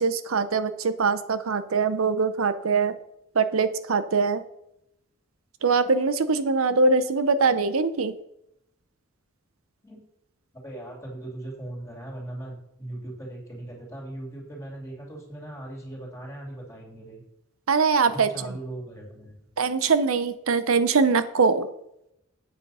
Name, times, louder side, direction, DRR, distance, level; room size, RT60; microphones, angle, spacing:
voice 1, 0.0-2.9 3.3-4.4 5.6-8.1 17.7-18.3 19.6-21.7, right 4 dB, 85° right, 12 dB, 0.7 m, -22 dB
voice 2, 10.6-17.2 18.1-19.4, right 1 dB, 15° left, -1 dB, 2.7 m, -39 dB
8.3 x 7.4 x 5.5 m, 0.80 s
head